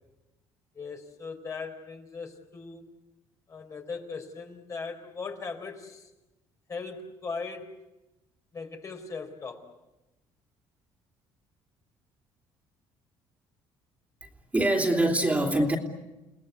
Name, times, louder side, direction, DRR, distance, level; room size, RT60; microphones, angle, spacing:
voice 1, 0.7-2.9 3.5-6.1 6.7-7.8 8.5-9.7, left 4 dB, 35° left, 4 dB, 4.3 m, -39 dB
voice 2, 14.5-15.8, right 1 dB, 15° right, 2 dB, 3.1 m, -23 dB
29.5 x 19.0 x 8.2 m, 1.0 s
cardioid pair, 100°, 9 cm